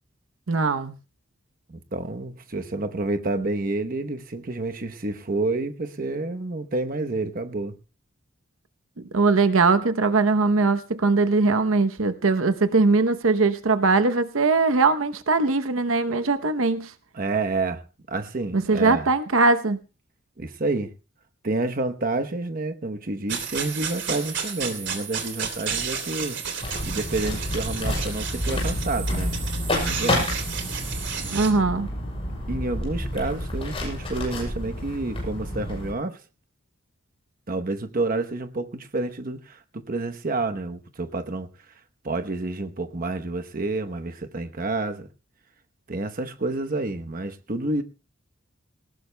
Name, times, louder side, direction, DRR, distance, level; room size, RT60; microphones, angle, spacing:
voice 1, 0.5-0.9 9.1-16.9 18.5-19.8 31.3-31.9, right 3 dB, 85° right, 0.8 m, -21 dB
voice 2, 1.7-7.8 17.1-19.1 20.4-20.9 21.4-26.4 26.8-29.3 29.8-30.3 32.5-36.2 37.5-41.5 42.0-45.1 45.9-47.8, right 2 dB, 45° right, 0.9 m, -29 dB
sound 1, 23.3-31.5, right 7 dB, 60° right, 3.1 m, -32 dB
sound 2, 26.6-35.9, left 1 dB, 30° left, 6.5 m, -29 dB
19.5 x 18.5 x 2.2 m
head